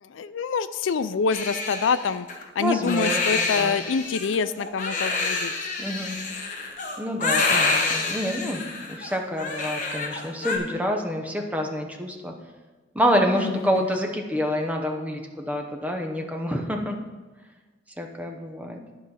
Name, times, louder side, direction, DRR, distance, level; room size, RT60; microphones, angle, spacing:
voice 1, 0.0-2.3 2.6-5.5 13.3-13.6, left 5 dB, 85° left, 14 dB, 0.4 m, -26 dB
Crying sobbing, 1.3-10.6, left 3 dB, 40° left, 1.1 m, -27 dB
voice 2, 2.6-3.8 5.8-6.2 7.0-12.3 12.9-17.0 18.0-18.8, equal, 10° right, 2 dB, 0.8 m, -27 dB
10.5 x 5.0 x 5.6 m, 1.3 s
head